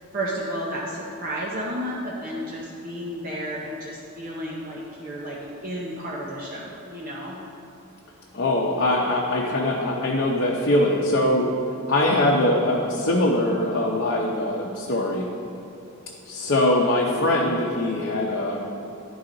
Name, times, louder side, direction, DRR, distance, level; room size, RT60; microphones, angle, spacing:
voice 1, 0.1-7.4, equal, 40° right, -5 dB, 0.8 m, -32 dB
voice 2, 8.3-11.4 11.9-15.3 16.3-18.6, left 1 dB, 55° left, -3 dB, 0.7 m, -22 dB
11.5 x 4.8 x 3.9 m, 2.7 s
head